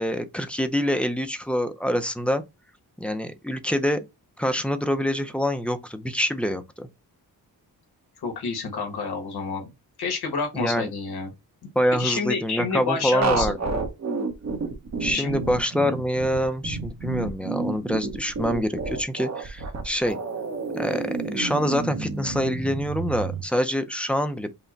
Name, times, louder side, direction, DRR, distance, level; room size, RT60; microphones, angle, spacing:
voice 1, 0.0-2.4 3.0-4.0 4.4-6.9 10.5-10.9 11.7-13.8 15.0-20.2 20.7-24.5, equal, 5° left, 0.4 m, -26 dB
voice 2, 8.2-9.7 10.0-11.3 12.0-13.5 15.1-15.4, left 4 dB, 80° left, 1.4 m, -29 dB
sound 1, 13.2-23.4, right 4 dB, 45° right, 0.9 m, -30 dB
5.7 x 2.1 x 3.8 m
wide cardioid pair, 155°, 38 cm